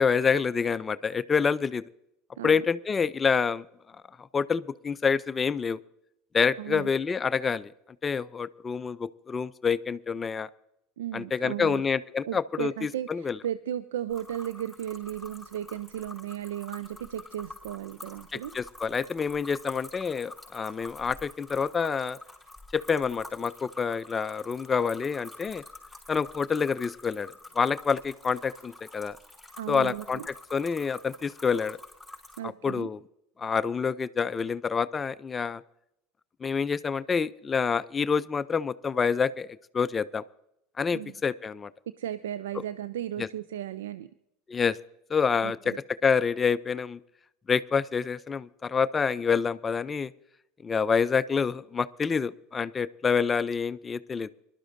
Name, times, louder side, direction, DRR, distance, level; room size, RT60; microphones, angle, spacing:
voice 1, 0.0-1.8 2.4-3.6 4.2-5.8 6.3-7.7 8.0-10.5 11.1-13.4 18.3-22.2 22.7-25.6 26.1-29.2 29.7-31.8 32.6-33.0 33.4-35.6 36.4-39.5 39.7-40.2 40.8-41.7 43.2-43.3 44.5-44.8 45.1-45.7 46.0-47.0 47.5-50.1 50.6-54.3, left 6 dB, 25° left, 16 dB, 0.4 m, -27 dB
voice 2, 6.6-6.9 11.0-11.8 12.3-18.5 29.6-30.3 32.4-32.9 40.9-41.1 42.0-44.1 45.4-45.8, right 11 dB, 75° right, 14 dB, 0.4 m, -35 dB
sound 1, 14.1-32.4, left 2 dB, 5° right, 4.9 m, -47 dB
24.0 x 12.0 x 2.6 m, 0.81 s
hypercardioid pair, 75°, 0 cm